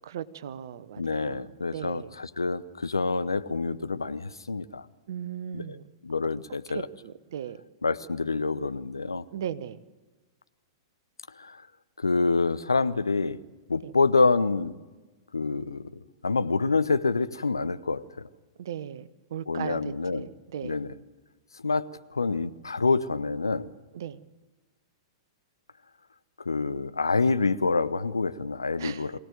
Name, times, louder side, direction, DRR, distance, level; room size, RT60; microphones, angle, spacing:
voice 1, 0.0-2.1 3.1-3.3 5.1-5.9 6.2-6.3 6.7-7.6 9.3-9.8 13.8-14.0 18.6-20.8 23.9-24.2 28.8-29.1, right 9 dB, 60° right, 15 dB, 1.0 m, -38 dB
voice 2, 1.0-4.8 5.5-5.6 6.0-6.8 7.8-9.2 11.4-11.5 12.0-13.4 13.7-14.7 15.3-15.8 16.2-18.0 19.5-20.2 20.6-20.9 21.6-21.9 22.1-23.7 26.4-29.1, left 4 dB, 80° left, 13 dB, 0.8 m, -26 dB
23.0 x 17.5 x 7.9 m, 1.3 s
figure-of-eight pair, 105°, 2 cm